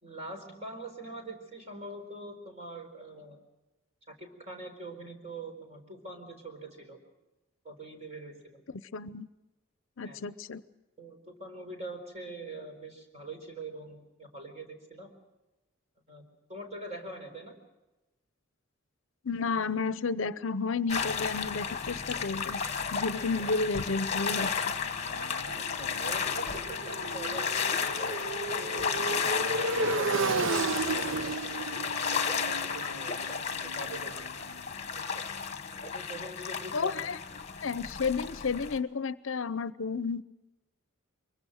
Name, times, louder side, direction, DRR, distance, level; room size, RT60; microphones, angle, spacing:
voice 1, 0.0-3.4 4.1-7.0 7.6-8.6 10.0-10.2 11.0-15.1 16.1-16.2 16.5-17.6 25.5-28.9 29.3-31.3 31.7-34.3 35.1-35.2 35.8-37.1, right 2 dB, 30° right, 4 dB, 4.3 m, -44 dB
voice 2, 8.9-9.3 10.0-10.6 19.2-22.6 22.9-24.7 36.7-37.2 37.6-40.2, left 4 dB, 70° left, 16 dB, 0.7 m, -32 dB
sound 1, 20.9-38.8, left 6 dB, 30° left, 1.3 m, -33 dB
Motorcycle, 24.8-34.6, right 3 dB, 65° right, 0.8 m, -34 dB
24.0 x 23.0 x 6.4 m, 1.0 s
head